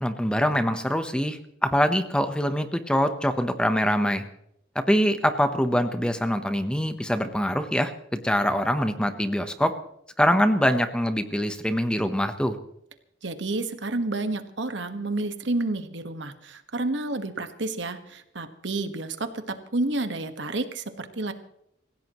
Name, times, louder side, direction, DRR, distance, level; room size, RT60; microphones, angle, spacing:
voice 1, 0.0-4.2 4.7-7.9 8.2-9.7 10.2-12.6, equal, 5° left, 8 dB, 0.9 m, -24 dB
voice 2, 13.2-21.3, right 2 dB, 75° right, 8 dB, 1.5 m, -30 dB
26.0 x 16.0 x 3.1 m, 0.74 s
head